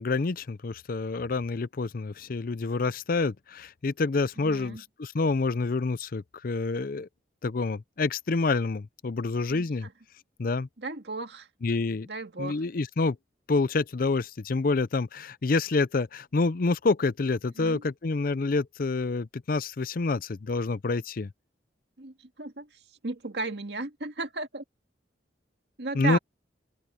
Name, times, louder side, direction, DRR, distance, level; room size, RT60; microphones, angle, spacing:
voice 1, 0.0-7.1 7.4-9.9 10.4-10.7 11.6-12.1 12.4-13.2 13.5-21.3 25.9-26.2, left 3 dB, 50° left, 0.5 m, -27 dB
voice 2, 4.4-4.8 9.5-9.9 10.8-11.5 12.0-12.6 17.6-17.8 22.0-24.6 25.8-26.2, right 3 dB, 70° right, 2.1 m, -35 dB
open air
head